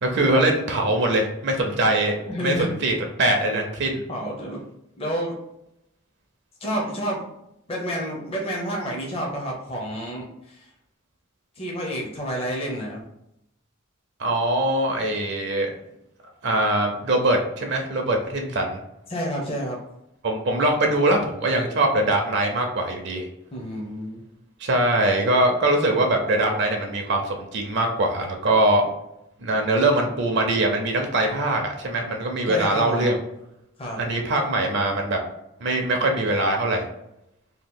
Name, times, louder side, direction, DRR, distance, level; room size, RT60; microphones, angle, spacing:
voice 1, 0.0-4.0 14.2-15.7 16.4-18.8 20.2-23.3 24.6-28.8 29.4-33.2 34.0-35.2 35.6-36.8, right 1 dB, 55° right, 2 dB, 0.5 m, -22 dB
voice 2, 2.3-2.7 4.1-4.6 5.0-5.4 6.6-7.2 7.7-10.7 11.6-13.0 19.1-19.8 23.5-24.2 32.5-33.1 33.8-34.0, equal, 25° left, -2 dB, 0.6 m, -29 dB
2.8 x 2.3 x 3.7 m, 0.82 s
head